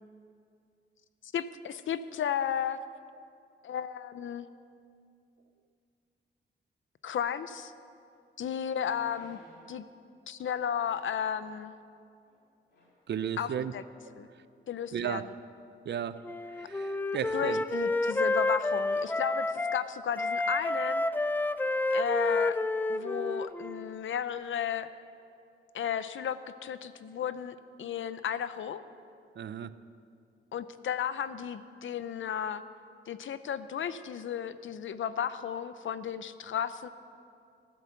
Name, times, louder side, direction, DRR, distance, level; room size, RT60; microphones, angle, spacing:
voice 1, 1.3-2.8 3.6-4.5 7.0-7.7 8.4-9.4 9.7-9.8 10.3-11.7 13.4-13.8 14.2-14.3 14.7-15.3 17.3-21.0 21.9-22.6 22.9-24.9 25.7-28.8 30.5-32.6 33.1-36.9, left 8 dB, 75° left, 13 dB, 0.6 m, -34 dB
sound 1, 8.8-9.7 10.8-11.3 12.2-12.4 12.7-13.0 13.5-13.6, left 1 dB, 55° left, 3.7 m, -59 dB
voice 2, 13.1-13.7 14.9-15.3 15.9-16.2 16.6-17.6 29.4-29.7, right 8 dB, 60° right, 14 dB, 0.5 m, -34 dB
Wind instrument woodwind instrument, 16.2-19.8 20.2-23.9, left 2 dB, 10° left, 0.3 m, -29 dB
14.0 x 12.0 x 7.0 m, 2.5 s
wide cardioid pair, 155°, 20 cm